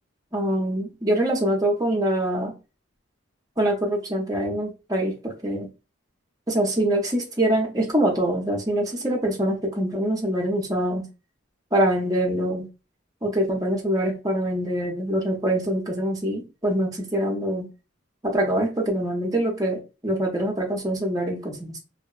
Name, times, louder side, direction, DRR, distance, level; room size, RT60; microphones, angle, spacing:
voice 1, 0.3-2.5 3.6-5.7 6.5-11.1 11.7-12.7 13.2-17.7 18.2-21.8, right 1 dB, 20° right, 0.6 m, -24 dB
2.7 x 2.1 x 2.3 m
head